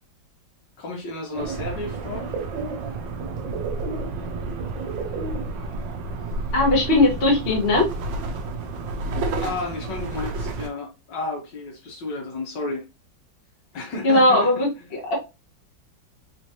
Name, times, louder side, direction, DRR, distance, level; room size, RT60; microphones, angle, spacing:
voice 1, 0.8-2.3 9.2-12.9 13.7-14.5, left 3 dB, 70° left, 1.8 m, -32 dB
sound 1, 1.4-10.7, right 3 dB, 80° right, 1.5 m, -30 dB
voice 2, 6.5-7.9 14.0-15.2, left 2 dB, 35° left, 1.3 m, -19 dB
4.3 x 3.1 x 2.8 m
omnidirectional pair, 2.0 m